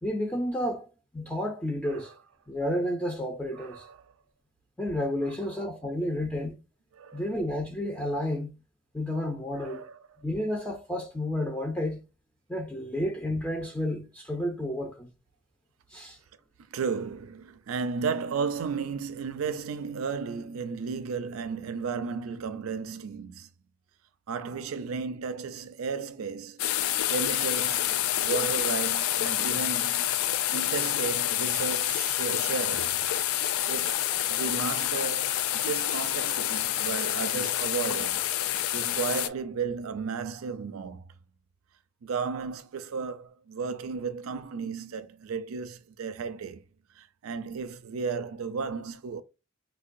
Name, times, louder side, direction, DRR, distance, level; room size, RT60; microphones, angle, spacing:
voice 1, 0.0-0.9 1.1-2.1 2.5-3.9 4.8-6.6 7.1-8.5 8.9-9.8 10.2-12.0 12.5-15.1 15.9-16.2, left 1 dB, 5° left, 0.4 m, -31 dB
voice 2, 3.5-4.0 7.0-7.2 9.5-10.0 16.7-23.5 24.3-26.7 27.1-30.1 30.5-33.0 33.7-41.0 42.0-46.6 47.0-49.2, right 5 dB, 90° right, 0.4 m, -34 dB
sound 1, 26.6-39.3, left 12 dB, 90° left, 0.3 m, -28 dB
4.4 x 2.2 x 2.5 m
head